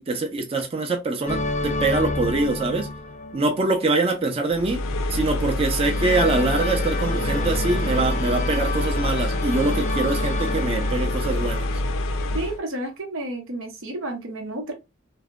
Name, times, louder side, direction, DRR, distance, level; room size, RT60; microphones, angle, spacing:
voice 1, 0.1-2.9 3.3-4.8 5.1-11.7, right 2 dB, 30° right, 0.4 m, -24 dB
sound 1, 1.3-3.9 5.8-12.0, left 2 dB, 35° left, 0.5 m, -30 dB
sound 2, 4.5-12.6, left 1 dB, 85° left, 0.4 m, -26 dB
voice 2, 12.3-14.7, right 1 dB, 85° right, 0.8 m, -31 dB
2.6 x 2.1 x 2.2 m
head